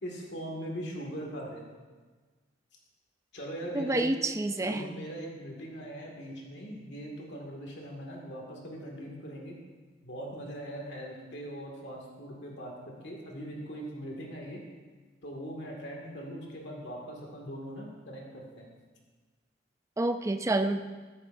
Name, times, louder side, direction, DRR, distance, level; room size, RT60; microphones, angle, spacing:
voice 1, 0.0-1.7 3.3-4.1 4.7-9.6 10.0-14.6 15.2-18.7, equal, 65° left, -1 dB, 2.0 m, -40 dB
voice 2, 3.7-4.8 20.0-20.8, right 2 dB, 15° right, 8 dB, 0.4 m, -28 dB
14.0 x 9.9 x 2.6 m, 1.4 s
head